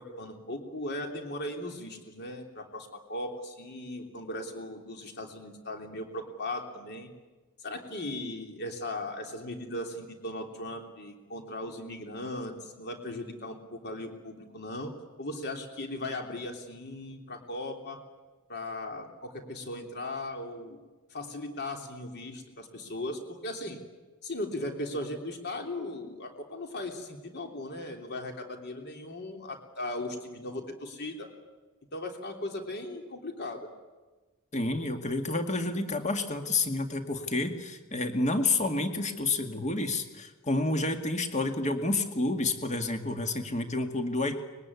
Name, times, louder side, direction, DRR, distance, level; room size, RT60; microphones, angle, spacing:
voice 1, 0.0-7.1 7.6-14.9 15.2-18.0 18.5-20.8 21.1-23.8 24.2-31.3 31.9-33.7, left 1 dB, 50° left, 4 dB, 3.3 m, -38 dB
voice 2, 34.5-44.4, left 2 dB, 30° left, 6 dB, 2.1 m, -29 dB
24.0 x 21.5 x 9.7 m, 1.3 s
head